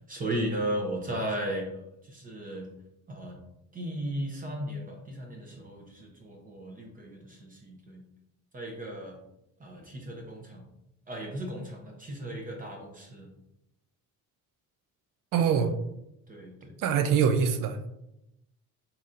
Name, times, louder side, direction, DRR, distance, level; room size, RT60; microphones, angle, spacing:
voice 1, 0.1-1.7 2.0-2.7 3.1-3.3 3.7-8.0 8.5-9.2 9.6-10.6 11.1-13.3 16.3-16.7, right 1 dB, 25° right, 0 dB, 0.7 m, -35 dB
voice 2, 15.3-15.8 16.8-17.9, right 7 dB, 75° right, 8 dB, 0.5 m, -24 dB
4.2 x 4.0 x 2.5 m, 0.84 s
cardioid pair, 155°, 33 cm